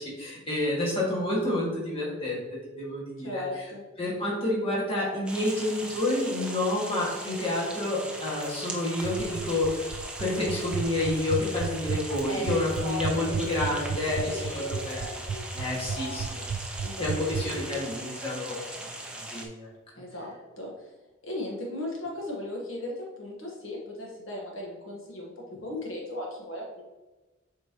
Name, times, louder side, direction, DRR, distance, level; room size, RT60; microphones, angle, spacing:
voice 1, 0.0-2.4 2.8-3.4 4.0-9.9 10.2-15.1 15.5-16.4 17.0-18.9 19.3-19.7, left 1 dB, 25° left, -5 dB, 1.7 m, -29 dB
voice 2, 3.2-3.8 12.2-12.5 12.8-16.3 16.8-17.1 17.4-17.9 19.9-20.9 21.2-26.8, left 1 dB, 80° left, -1 dB, 1.3 m, -37 dB
sound 1, 5.3-19.5, right 1 dB, 5° right, 0.5 m, -39 dB
sound 2, 9.0-17.4, right 6 dB, 80° right, 0.4 m, -32 dB
7.3 x 4.5 x 2.9 m, 1.2 s
head